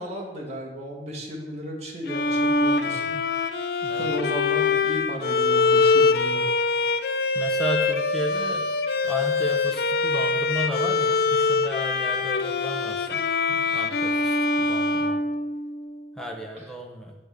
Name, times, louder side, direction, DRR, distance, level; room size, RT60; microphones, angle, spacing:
voice 1, 0.0-3.1 3.9-6.4 16.6-16.7, equal, 35° right, -2 dB, 1.6 m, -34 dB
Bowed string instrument, 2.1-16.0, left 3 dB, 55° left, 0.4 m, -24 dB
voice 2, 7.3-8.7 9.0-13.2 13.5-15.2 16.2-17.2, equal, 5° left, 0 dB, 0.7 m, -33 dB
8.3 x 3.5 x 6.3 m, 1.1 s
head